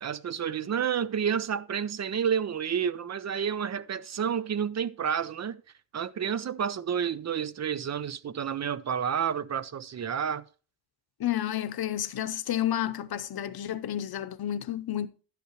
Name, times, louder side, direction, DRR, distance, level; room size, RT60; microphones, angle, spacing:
voice 1, 0.0-5.6 5.9-10.4, right 7 dB, 45° right, 0.4 m, -30 dB
voice 2, 11.2-15.1, left 11 dB, 75° left, 0.7 m, -31 dB
11.5 x 8.3 x 3.0 m
wide cardioid pair, 160°, 38 cm